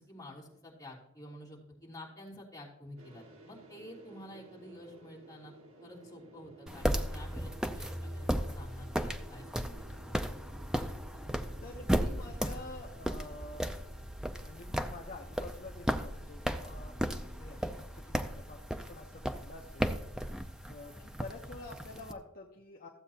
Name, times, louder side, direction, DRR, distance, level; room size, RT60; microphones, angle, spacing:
voice 1, 0.0-5.5 5.8-10.3, left 1 dB, 15° left, -6 dB, 3.2 m, -50 dB
sound 1, 3.0-19.1, right 2 dB, 75° right, 2.0 m, -57 dB
sound 2, 6.7-22.1, equal, 5° right, 0.4 m, -36 dB
voice 2, 11.1-13.8 14.3-19.9 20.7-22.9, left 2 dB, 40° left, -1 dB, 0.9 m, -49 dB
14.5 x 8.0 x 2.9 m, 0.84 s
head